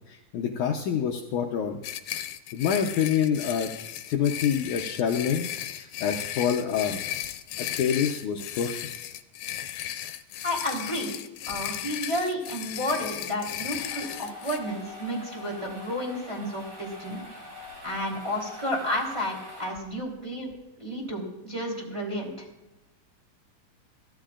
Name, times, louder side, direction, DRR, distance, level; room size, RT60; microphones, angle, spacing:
voice 1, 0.1-1.8 2.5-3.7 4.1-5.5 5.7-7.0 7.6-8.8, left 8 dB, 70° left, 2 dB, 2.1 m, -26 dB
sound 1, 1.8-14.6, left 12 dB, 85° left, 2.4 m, -35 dB
voice 2, 10.4-11.1 11.5-17.2 17.8-20.5 20.8-22.5, equal, 10° right, -3 dB, 3.2 m, -31 dB
sound 2, 13.5-20.2, left 3 dB, 65° right, 5.9 m, -44 dB
23.0 x 15.0 x 2.5 m, 0.97 s
omnidirectional pair, 4.0 m